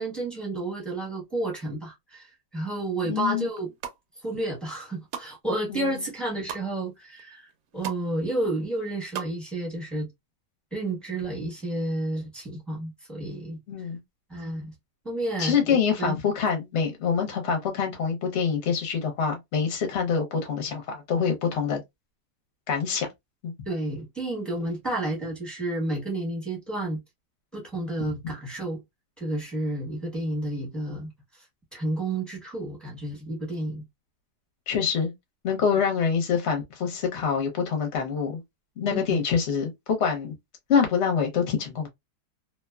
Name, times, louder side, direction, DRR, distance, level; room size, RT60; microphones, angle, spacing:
voice 1, 0.0-3.7 4.2-10.1 10.7-13.9 14.3-14.7 15.0-16.2 23.7-27.0 27.5-28.8 29.2-31.4 31.7-33.8 38.9-39.2, right 1 dB, ahead, 0.8 m, -31 dB
voice 2, 3.0-3.5 5.7-6.0 13.7-14.0 15.4-21.8 22.7-23.1 23.4-23.5 34.7-35.1 35.4-38.4 38.8-40.3 40.7-41.9, left 6 dB, 50° left, 1.0 m, -25 dB
sound 1, 3.5-4.0 4.5-5.3 5.7-6.7 7.2-7.3 7.5-8.1 8.3-9.3 9.6-9.7, right 8 dB, 70° right, 1.0 m, -37 dB
2.8 x 2.2 x 2.2 m
omnidirectional pair, 1.8 m